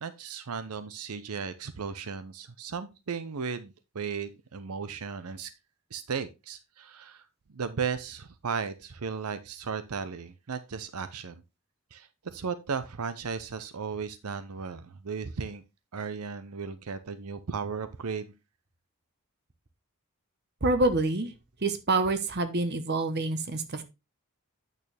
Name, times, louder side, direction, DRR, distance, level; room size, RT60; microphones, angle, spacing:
voice 1, 0.0-5.5 5.9-11.4 11.9-15.6 15.9-18.3, right 5 dB, 85° right, 12 dB, 0.7 m, -35 dB
voice 2, 20.6-21.3 21.6-23.8, right 2 dB, 50° right, 10 dB, 1.0 m, -27 dB
8.7 x 6.6 x 3.3 m, 0.25 s
head